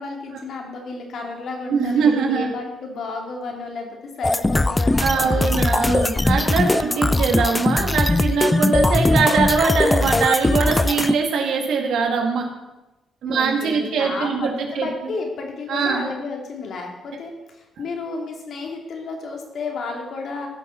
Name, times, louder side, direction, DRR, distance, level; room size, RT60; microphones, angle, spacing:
voice 1, 0.0-6.4 13.2-20.5, left 3 dB, 60° left, 1 dB, 2.8 m, -32 dB
voice 2, 1.7-2.5 5.0-12.5 13.2-14.9 15.7-16.1, right 5 dB, 75° right, 2 dB, 2.2 m, -22 dB
sound 1, 4.2-11.1, left 2 dB, 15° left, 0.4 m, -20 dB
15.0 x 6.2 x 5.8 m, 1.0 s
cardioid pair, 90°, 0 cm